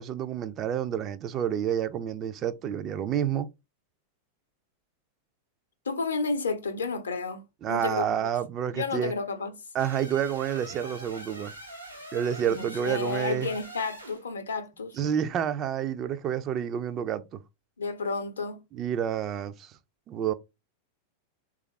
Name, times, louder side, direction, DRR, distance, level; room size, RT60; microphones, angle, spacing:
voice 1, 0.0-3.5 7.6-9.1 9.7-11.5 12.1-13.5 14.9-17.4 18.7-19.7 20.1-20.3, right 9 dB, 30° right, 0.3 m, -29 dB
voice 2, 5.9-8.3 8.7-9.6 12.5-15.0 17.8-18.6, left 4 dB, 70° left, 0.6 m, -31 dB
sound 1, 9.8-14.2, right 1 dB, 90° right, 0.8 m, -43 dB
3.3 x 2.4 x 3.1 m
figure-of-eight pair, 90°, 0 cm